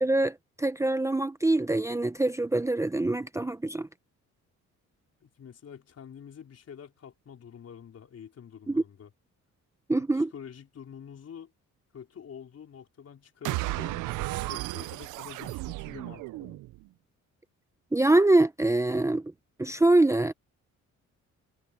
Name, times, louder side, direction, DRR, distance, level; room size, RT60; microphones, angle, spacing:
voice 1, 0.0-3.9 8.7-8.8 9.9-10.3 17.9-19.2 19.6-20.3, right 2 dB, 10° right, 0.7 m, -24 dB
voice 2, 5.2-9.1 10.0-11.5 11.9-16.6, left 8 dB, 55° left, 4.2 m, -47 dB
sound 1, 13.4-16.8, right 19 dB, 90° right, 0.6 m, -34 dB
cardioid pair, 90°, 30 cm